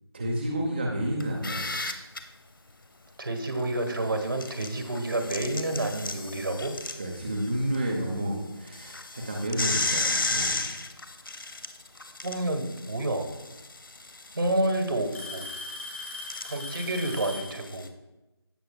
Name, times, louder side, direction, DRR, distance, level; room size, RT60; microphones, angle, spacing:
voice 1, 0.1-1.8 7.0-10.6, right 1 dB, 25° right, -2 dB, 0.8 m, -30 dB
sound 1, 1.2-2.2 4.1-7.8 8.1-8.2 8.7-17.9, left 2 dB, 55° left, 0.9 m, -34 dB
voice 2, 3.2-6.8 12.2-13.3 14.3-15.5 16.4-17.9, right 1 dB, 55° right, 6 dB, 1.4 m, -29 dB
Alarm / Tick-tock, 5.6-5.7 7.4-7.5 8.7-8.8 10.0-10.5 12.2-12.3 13.6-13.7 14.0-14.5 15.1-17.6, left 2 dB, 30° left, 1.7 m, -39 dB
16.0 x 6.6 x 2.3 m, 1.0 s
figure-of-eight pair, 170°, 14 cm